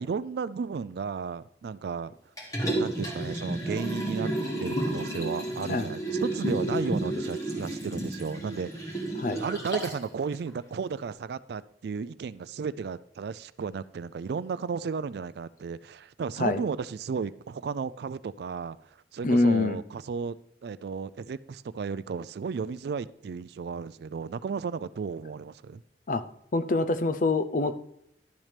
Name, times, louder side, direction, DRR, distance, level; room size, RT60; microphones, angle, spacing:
voice 1, 0.0-2.1 2.8-4.3 4.6-9.0 9.4-18.8 19.1-20.4 20.6-25.8, right 5 dB, 65° right, 17 dB, 0.3 m, -34 dB
Liquid, 2.4-10.0 10.5-10.6, right 1 dB, 20° left, 2.1 m, -31 dB
voice 2, 19.2-19.8 26.1-26.2 26.5-27.8, left 2 dB, 50° left, 12 dB, 0.6 m, -25 dB
11.5 x 7.2 x 3.3 m, 0.75 s
head